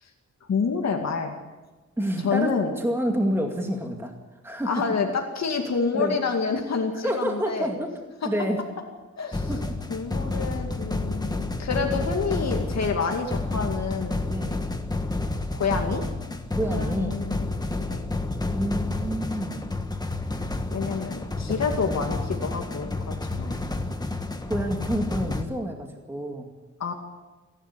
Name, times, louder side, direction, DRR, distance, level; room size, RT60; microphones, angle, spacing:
voice 1, 0.5-1.3 2.2-2.7 4.6-7.7 9.2-9.5 9.9-14.2 15.5-16.0 16.7-17.5 17.8-18.1 20.7-23.7 26.8-26.9, left 5 dB, 60° left, 2 dB, 2.3 m, -28 dB
voice 2, 2.0-4.1 4.4-4.8 5.9-6.2 7.0-7.9 8.2-8.6 9.5-9.6 14.3-14.6 16.6-17.2 18.5-19.7 21.5-21.6 24.4-26.5, equal, 10° right, 2 dB, 2.2 m, -28 dB
sound 1, 9.3-25.4, left 2 dB, 15° left, 1.5 m, -30 dB
28.0 x 11.5 x 8.5 m, 1.2 s
wide cardioid pair, 140°, 29 cm